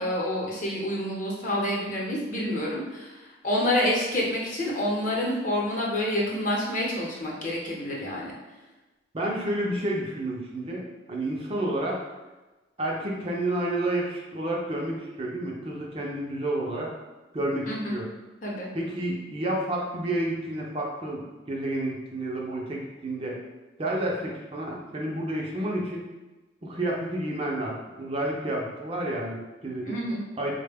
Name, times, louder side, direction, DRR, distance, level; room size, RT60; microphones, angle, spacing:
voice 1, 0.0-8.3 17.7-17.9 18.4-18.7 29.8-30.2, left 1 dB, 45° left, -3 dB, 0.8 m, -28 dB
voice 2, 9.1-10.8 11.1-12.0 12.8-16.9 17.3-18.1 18.7-23.4 23.8-26.0 26.6-29.9 30.4-30.5, right 1 dB, 30° right, -2 dB, 0.5 m, -30 dB
4.2 x 2.2 x 3.4 m, 1.1 s
head